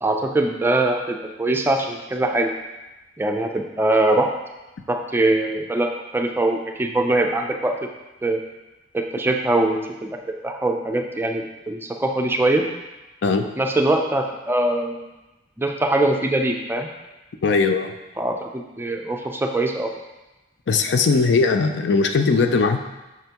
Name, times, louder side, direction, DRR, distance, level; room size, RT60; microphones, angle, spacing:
voice 1, 0.0-2.5 3.2-4.3 4.9-7.7 8.2-8.4 8.9-10.2 10.4-12.7 13.6-15.1 15.6-16.9 18.2-19.9, right 2 dB, 10° right, 3 dB, 0.4 m, -22 dB
voice 2, 17.4-17.9 20.7-22.8, left 4 dB, 65° left, 7 dB, 0.4 m, -19 dB
5.9 x 5.5 x 2.9 m, 1.0 s
head